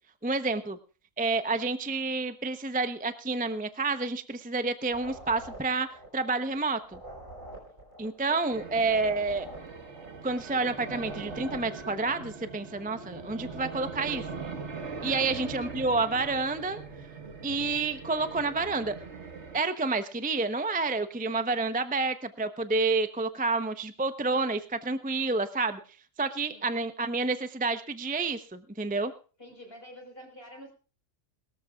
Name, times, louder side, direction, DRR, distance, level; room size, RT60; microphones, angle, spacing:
voice 1, 0.2-0.8 1.2-5.9 6.1-7.0 8.0-9.5 10.2-14.3 15.0-16.8 17.4-18.9 19.5-25.8 26.2-29.1, right 3 dB, 10° right, 9 dB, 0.7 m, -29 dB
sound 1, 4.8-12.2, right 1 dB, 35° right, 5.8 m, -46 dB
voice 2, 8.2-8.5 14.8-15.5 26.5-26.7 29.4-30.7, equal, 40° left, 2 dB, 5.0 m, -48 dB
sound 2, 8.5-19.6, right 4 dB, 55° right, 1.8 m, -41 dB
22.0 x 13.5 x 2.4 m, 0.37 s
omnidirectional pair, 1.5 m